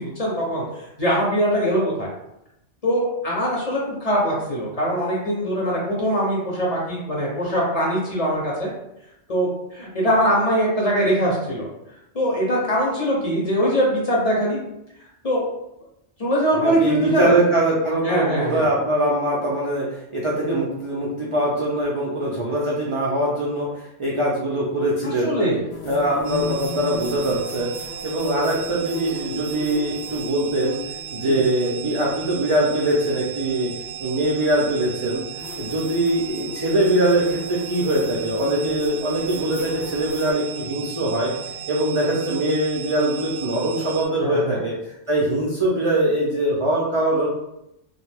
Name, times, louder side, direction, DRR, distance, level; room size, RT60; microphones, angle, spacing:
voice 1, 0.0-2.1 2.8-8.7 9.3-11.7 12.1-14.6 15.2-15.4 16.2-17.3 18.0-18.7 25.0-25.6 31.2-31.4 44.2-44.6, equal, 40° left, -4 dB, 0.8 m, -22 dB
voice 2, 16.6-25.4 25.8-27.7 28.0-30.8 31.1-33.7 34.0-35.2 35.6-41.3 41.7-47.3, right 1 dB, 50° right, -4 dB, 0.4 m, -22 dB
sound 1, 25.7-31.2 33.2-33.3 35.4-40.3, left 4 dB, 80° left, 0.9 m, -36 dB
sound 2, 26.2-44.1, right 8 dB, 90° right, 0.9 m, -36 dB
2.5 x 2.2 x 3.3 m, 0.85 s
omnidirectional pair, 1.1 m